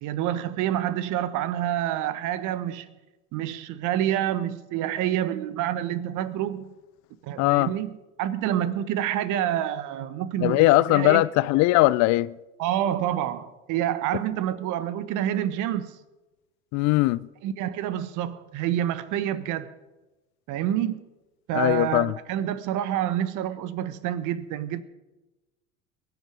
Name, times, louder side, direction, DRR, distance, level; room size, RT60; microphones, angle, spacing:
voice 1, 0.0-2.9 3.3-6.7 7.2-11.2 12.6-15.9 17.4-19.7 20.5-21.0 21.5-24.8, right 11 dB, 50° right, 1.2 m, -28 dB
voice 2, 7.4-7.7 10.4-12.3 16.7-17.3 21.5-22.1, left 18 dB, 50° left, 0.5 m, -20 dB
22.5 x 9.5 x 5.1 m
figure-of-eight pair, 70°, 37 cm